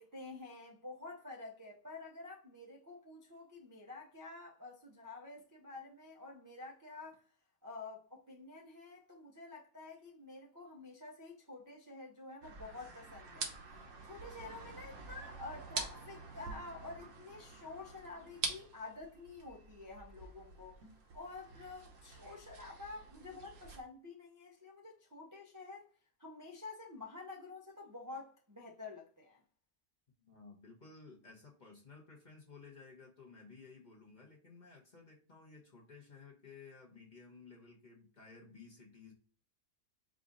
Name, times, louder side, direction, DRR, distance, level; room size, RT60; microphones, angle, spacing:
voice 1, 0.0-7.2 7.6-20.8 21.1-25.9 26.2-29.4, left 3 dB, 20° right, 0.5 m, -49 dB
sound 1, 12.4-23.8, right 4 dB, 60° right, 1.2 m, -46 dB
voice 2, 30.2-39.1, left 4 dB, 35° left, 0.9 m, -56 dB
4.8 x 2.5 x 3.8 m
omnidirectional pair, 1.6 m